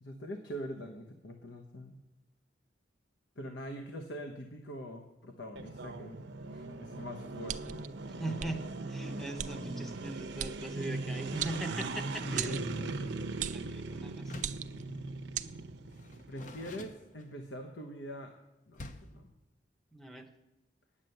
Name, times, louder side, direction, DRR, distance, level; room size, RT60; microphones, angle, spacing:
voice 1, 0.0-2.0 3.4-6.2 6.5-7.8 8.2-8.4 12.2-13.2 14.3-15.1 16.3-18.3 18.7-19.3, equal, 75° left, 4 dB, 1.0 m, -44 dB
sound 1, 5.6-16.9, right 3 dB, 75° right, 0.7 m, -40 dB
sound 2, 7.5-7.9 8.4-8.5 9.4-9.5 10.4-10.6 11.4-12.0 12.4-12.6 13.4-13.7 14.4-14.8 15.3-15.5, right 10 dB, 40° right, 0.3 m, -37 dB
voice 2, 8.1-8.6 8.9-12.8 13.5-14.4 19.9-20.3, right 2 dB, ahead, 6 dB, 0.8 m, -40 dB
Door, 14.2-14.7 15.9-17.6 18.7-19.2, left 2 dB, 40° left, 0.6 m, -48 dB
9.8 x 7.4 x 7.8 m, 0.97 s
head